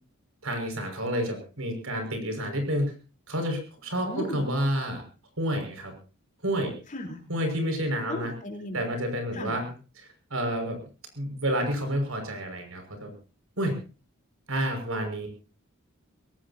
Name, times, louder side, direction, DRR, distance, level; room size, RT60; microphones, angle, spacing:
voice 1, 0.4-2.9 3.3-5.0 5.4-5.9 6.4-6.7 7.3-8.3 8.7-9.7 10.3-10.8 11.2-13.1 13.6-13.8 14.5-15.3, equal, 70° right, 5 dB, 5.9 m, -29 dB
voice 2, 4.0-4.4 6.9-7.2 8.1-8.8 9.3-9.6, left 1 dB, 35° left, 3 dB, 3.9 m, -35 dB
23.5 x 18.0 x 2.9 m, 0.34 s
head